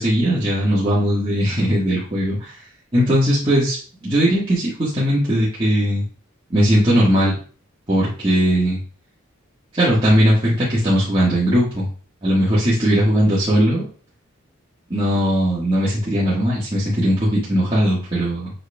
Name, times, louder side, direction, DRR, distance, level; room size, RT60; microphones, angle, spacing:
voice 1, 0.0-2.5 2.9-3.8 4.0-6.0 6.5-7.4 7.9-8.8 9.7-11.9 12.2-13.8 14.9-18.5, equal, 25° right, -9 dB, 1.7 m, -18 dB
7.8 x 5.2 x 2.3 m, 0.40 s
head